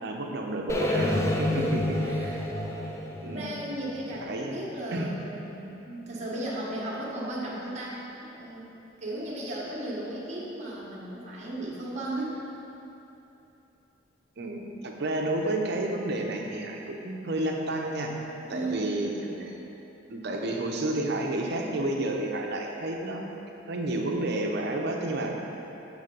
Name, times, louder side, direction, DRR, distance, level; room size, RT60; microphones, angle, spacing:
voice 1, 0.0-1.8 2.2-2.4 3.2-3.6 4.2-4.5 4.9-5.1 14.4-18.2 18.5-19.6 20.1-23.2 23.7-25.3, right 1 dB, 60° right, 1 dB, 0.6 m, -31 dB
sound 1, 0.7-4.7, left 1 dB, 15° left, 0.4 m, -29 dB
voice 2, 1.5-2.5 3.2-8.7 9.0-12.3 18.4-18.9, right 1 dB, 35° right, -5 dB, 1.1 m, -35 dB
7.2 x 3.2 x 5.2 m, 3.0 s
head